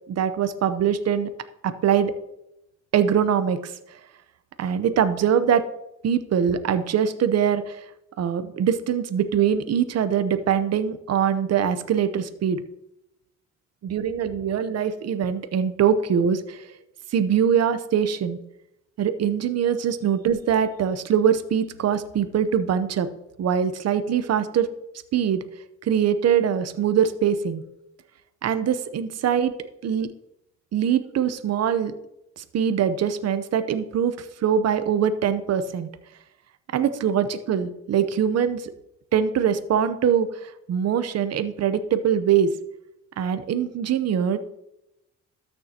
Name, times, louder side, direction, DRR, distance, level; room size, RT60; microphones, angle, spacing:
voice 1, 0.1-1.3 1.6-2.1 2.9-3.7 4.6-5.6 6.0-7.8 8.2-12.6 13.8-16.7 17.1-18.4 19.0-23.1 23.4-24.7 25.1-25.4 25.8-27.6 28.4-29.5 29.8-30.1 30.7-31.9 32.4-35.9 36.7-38.7 39.1-40.4 40.7-42.5 43.2-44.4, right 8 dB, 55° right, 11 dB, 0.8 m, -23 dB
13.0 x 6.9 x 2.9 m, 0.85 s
cardioid pair, 90°, 30 cm